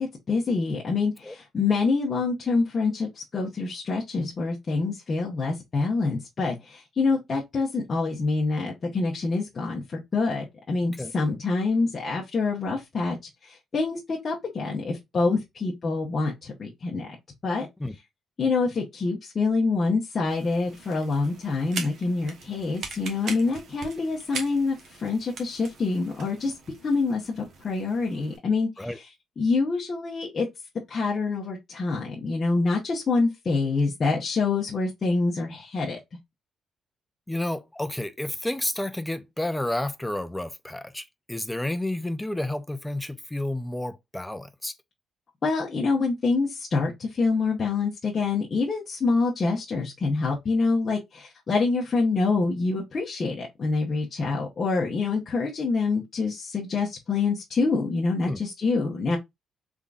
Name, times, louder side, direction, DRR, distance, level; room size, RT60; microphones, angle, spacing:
voice 1, 0.0-13.2 13.4-17.1 17.4-17.7 18.4-26.5 26.8-29.0 29.4-30.5 30.9-36.0 45.4-59.2, left 3 dB, 30° left, 0.9 m, -26 dB
sound 1, 20.3-28.4, right 4 dB, 50° right, 1.1 m, -41 dB
voice 2, 37.3-44.7 58.2-58.4, left 1 dB, 5° left, 0.4 m, -31 dB
3.7 x 3.5 x 2.4 m
cardioid pair, 155°, 0 cm